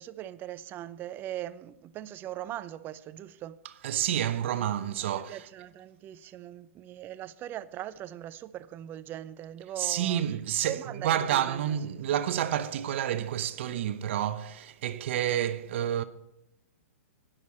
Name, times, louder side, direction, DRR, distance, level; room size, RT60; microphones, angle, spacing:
voice 1, 0.0-3.6 5.0-10.2 10.7-11.6, right 12 dB, 25° right, 0.5 m, -40 dB
voice 2, 3.8-5.4 9.8-16.0, right 10 dB, 55° right, 0.9 m, -29 dB
19.0 x 6.6 x 4.3 m
hypercardioid pair, 120°, 8 cm